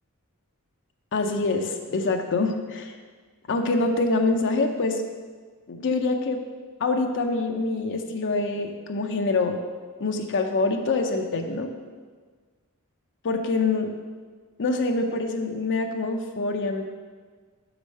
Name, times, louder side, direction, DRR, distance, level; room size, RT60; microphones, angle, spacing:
voice 1, 1.1-3.0 3.5-5.0 5.7-6.4 6.8-9.6 10.0-11.7 13.2-13.9 14.6-16.9, left 3 dB, 55° left, 4 dB, 0.5 m, -25 dB
5.4 x 4.9 x 6.3 m, 1.5 s
head